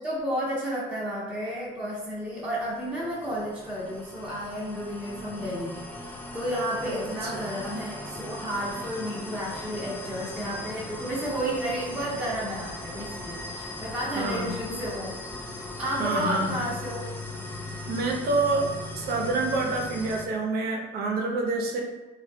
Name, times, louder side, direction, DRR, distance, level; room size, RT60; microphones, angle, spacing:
voice 1, 0.0-15.1 15.8-17.1, equal, 5° right, -9 dB, 0.8 m, -32 dB
sound 1, 2.2-20.2, left 2 dB, 10° left, 0.3 m, -39 dB
voice 2, 6.8-7.5 14.2-14.5 16.0-16.6 17.9-21.8, right 3 dB, 65° right, 1 dB, 0.6 m, -28 dB
3.2 x 2.3 x 2.6 m, 1.2 s
cardioid pair, 110°, 17 cm